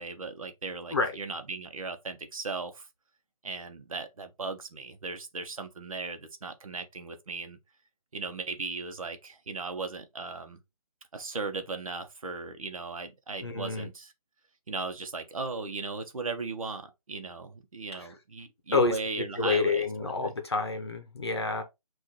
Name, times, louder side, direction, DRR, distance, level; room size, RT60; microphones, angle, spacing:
voice 1, 0.0-2.9 3.4-7.6 8.1-10.6 11.1-14.1 14.7-20.3, right 4 dB, 60° right, 1.0 m, -37 dB
voice 2, 13.4-13.9 18.7-19.0 19.4-21.6, left 4 dB, 40° left, 0.8 m, -28 dB
6.1 x 2.6 x 3.0 m
hypercardioid pair, 175°, 20 cm